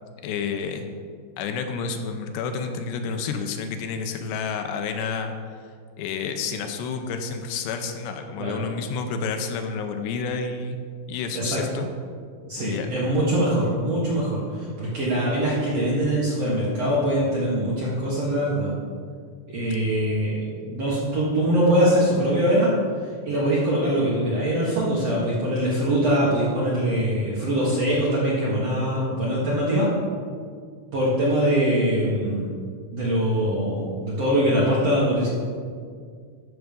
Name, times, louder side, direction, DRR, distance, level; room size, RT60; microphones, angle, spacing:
voice 1, 0.2-0.8 1.4-5.6 6.0-10.8 11.1-11.9 12.6-12.9, left 5 dB, 80° left, 6 dB, 2.8 m, -30 dB
voice 2, 12.4-18.7 19.5-20.4 20.7-22.7 23.2-29.9 30.9-32.5 32.9-35.3, right 1 dB, 55° right, -6 dB, 1.8 m, -23 dB
13.0 x 6.1 x 5.3 m, 2.1 s
omnidirectional pair, 5.0 m